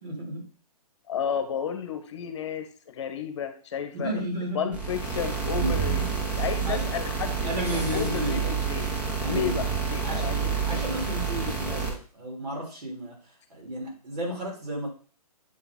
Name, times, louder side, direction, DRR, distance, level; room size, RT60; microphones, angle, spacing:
voice 1, 0.0-0.5 3.9-4.8 5.6-6.1 6.6-6.9 7.4-8.5 9.2-9.6 10.0-10.4 10.7-14.9, right 1 dB, 80° right, -1 dB, 3.4 m, -33 dB
voice 2, 1.1-4.2 4.5-8.4 8.7-8.9 9.2-10.8, left 8 dB, 45° left, 8 dB, 1.0 m, -32 dB
sound 1, 4.7-11.9, right 6 dB, 5° right, 0.6 m, -28 dB
7.9 x 3.8 x 3.7 m, 0.42 s
hypercardioid pair, 165°, 20 cm